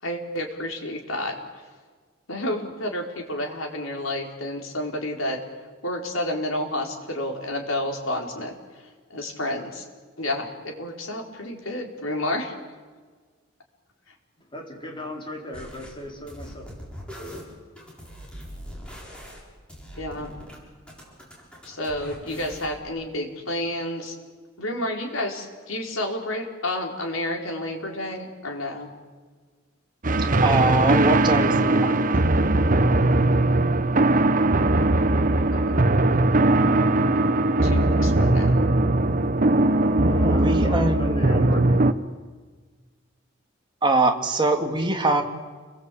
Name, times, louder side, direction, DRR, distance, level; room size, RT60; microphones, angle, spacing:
voice 1, 0.0-1.7 2.3-5.4 5.8-9.9 10.2-12.5 19.9-20.3 21.6-24.2 24.6-28.9 35.5-35.9 36.3-36.6 37.6-38.6, left 1 dB, 85° left, 2 dB, 4.6 m, -30 dB
voice 2, 14.5-16.8 30.7-32.2 40.1-42.0, left 1 dB, 25° left, 1 dB, 4.6 m, -36 dB
sound 1, 15.5-15.9 16.3-20.6 20.9-22.8, equal, 5° left, 6.9 m, -41 dB
sound 2, 30.0-41.9, right 2 dB, 40° right, 1.1 m, -20 dB
voice 3, 30.4-31.9 40.2-41.4 43.8-45.2, right 2 dB, 25° right, 3 dB, 2.5 m, -23 dB
30.0 x 21.5 x 8.6 m, 1.5 s
head